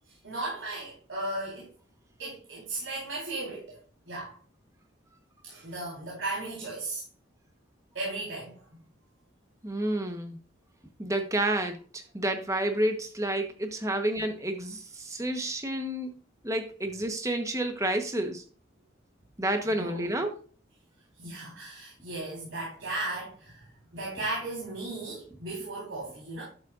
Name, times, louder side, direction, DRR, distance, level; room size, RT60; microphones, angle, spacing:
voice 1, 0.2-1.7 2.2-3.8 4.1-4.3 5.4-7.0 7.9-8.7 19.7-20.1 21.2-26.4, right 2 dB, 80° right, 4.0 m, -36 dB
voice 2, 9.6-10.4 11.0-16.1 16.4-18.4 19.4-20.3, right 1 dB, 15° right, 1.1 m, -30 dB
11.5 x 7.4 x 2.5 m
head